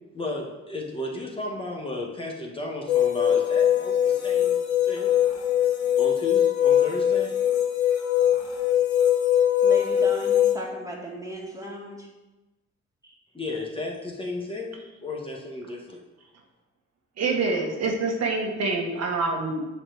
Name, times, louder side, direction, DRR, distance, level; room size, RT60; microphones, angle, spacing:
voice 1, 0.0-5.1 6.0-7.3 13.3-16.0, left 2 dB, 20° left, -1 dB, 1.3 m, -34 dB
sound 1, 2.9-10.5, left 10 dB, 70° left, 1.5 m, -22 dB
voice 2, 9.6-12.1 13.0-13.1, right 1 dB, 10° right, -2 dB, 2.2 m, -36 dB
voice 3, 17.2-19.6, right 3 dB, 60° right, 0 dB, 1.5 m, -26 dB
7.7 x 4.2 x 6.4 m, 1.1 s
cardioid pair, 90°, 30 cm